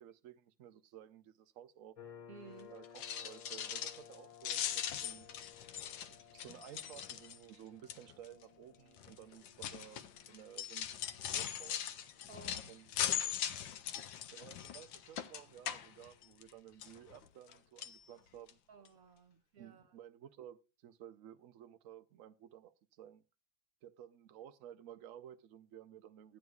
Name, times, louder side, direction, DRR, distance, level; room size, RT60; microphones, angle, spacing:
voice 1, 0.0-2.0 2.7-5.3 6.1-10.9 11.3-11.9 12.7-13.0 14.3-18.6 19.6-23.2 23.8-26.4, right 11 dB, 75° right, 0.7 m, -55 dB
sound 1, 1.9-17.2, left 8 dB, 45° left, 0.4 m, -60 dB
voice 2, 2.3-2.7 12.3-12.7 13.3-13.4 18.7-19.9, right 5 dB, 50° right, 1.6 m, -56 dB
sound 2, 2.8-4.2 4.4-7.6 7.9-8.3 9.0-16.5 16.8-17.5 17.8-18.0 18.5-18.6 18.9-19.0, left 10 dB, 80° left, 1.4 m, -40 dB
14.5 x 9.4 x 2.3 m
omnidirectional pair, 2.1 m